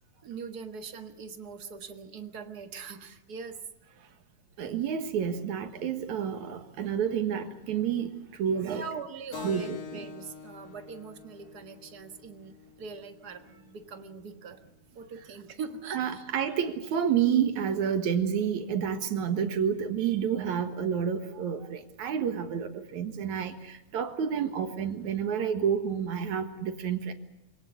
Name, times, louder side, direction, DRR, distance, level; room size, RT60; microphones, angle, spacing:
voice 1, 0.2-3.6 8.6-14.6 14.9-16.3, right 5 dB, 40° right, 7 dB, 1.5 m, -42 dB
voice 2, 4.6-8.1 8.4-8.8 9.4-9.8 15.9-27.1, right 8 dB, 75° right, 8 dB, 2.9 m, -29 dB
Keyboard (musical), 9.3-14.4, left 6 dB, 85° left, 3.0 m, -46 dB
25.0 x 18.0 x 8.1 m, 0.88 s
omnidirectional pair, 3.4 m